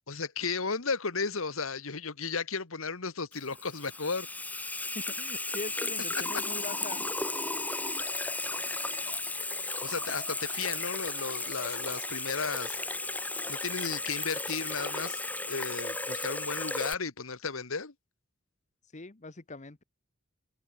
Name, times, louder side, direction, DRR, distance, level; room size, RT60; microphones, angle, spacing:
voice 1, 0.1-4.3 9.8-12.8 13.5-17.9, left 4 dB, 70° left, 1.6 m, -34 dB
Water tap faucet / Sink (filling or washing), 3.3-16.9, left 2 dB, 10° left, 1.4 m, -34 dB
voice 2, 5.2-7.0 18.9-19.8, left 3 dB, 35° left, 1.1 m, -42 dB
head